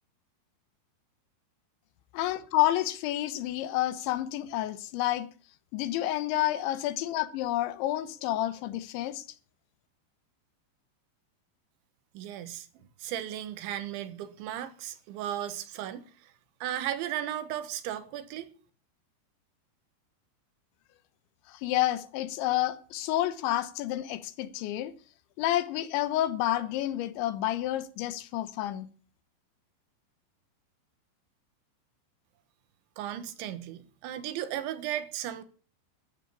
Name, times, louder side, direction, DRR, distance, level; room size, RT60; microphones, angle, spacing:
voice 1, 2.1-5.3 5.7-9.3 21.5-24.9 25.4-28.9, left 14 dB, 90° left, 3.4 m, -29 dB
voice 2, 12.2-12.7 13.0-16.3 16.6-18.5 33.0-35.4, right 11 dB, 85° right, 3.7 m, -35 dB
13.5 x 9.7 x 8.4 m
omnidirectional pair, 5.2 m